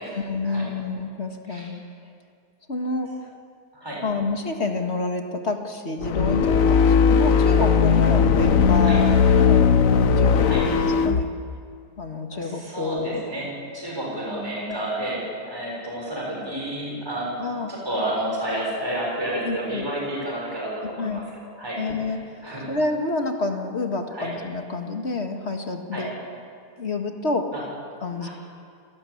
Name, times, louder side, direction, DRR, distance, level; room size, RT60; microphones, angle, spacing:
voice 1, 0.1-1.8 2.7-3.1 4.0-11.3 12.0-13.5 14.7-14.8 17.4-17.7 19.4-19.8 20.8-21.2 21.8-26.1 26.8-27.5 28.0-28.3, left 3 dB, 40° left, 4 dB, 2.1 m, -29 dB
sound 1, 6.0-11.2, left 6 dB, 60° left, 1.3 m, -18 dB
voice 2, 12.3-13.5 13.7-17.3 17.7-21.2 21.6-21.8 22.4-22.7 24.1-24.3 25.9-26.1 28.2-28.3, right 1 dB, 15° right, -3 dB, 6.6 m, -30 dB
28.5 x 19.0 x 8.6 m, 2.3 s
omnidirectional pair, 1.7 m